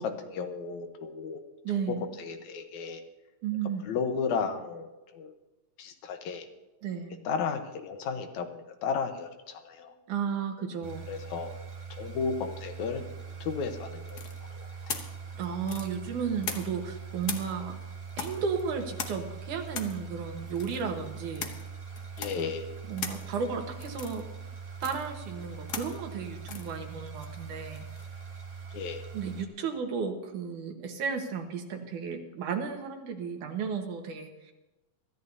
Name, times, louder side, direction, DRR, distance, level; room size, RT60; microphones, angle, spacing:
voice 1, 0.0-1.4 1.9-3.0 3.8-5.3 5.8-6.5 7.2-9.9 11.1-11.6 11.9-13.1 13.4-14.2 14.5-14.7 22.2-22.7 28.7-29.0, left 5 dB, 75° left, 6 dB, 2.4 m, -34 dB
voice 2, 1.6-2.0 3.4-3.9 6.8-7.1 10.1-11.0 15.4-17.7 18.2-21.5 22.9-24.2 24.8-27.8 29.1-34.5, right 6 dB, 85° right, 3 dB, 3.0 m, -34 dB
sound 1, 10.8-29.4, right 6 dB, 30° right, 0.7 m, -42 dB
sound 2, 14.1-16.9 17.2-28.2, left 6 dB, 90° left, 0.8 m, -41 dB
23.5 x 13.5 x 2.8 m, 1.1 s
omnidirectional pair, 3.4 m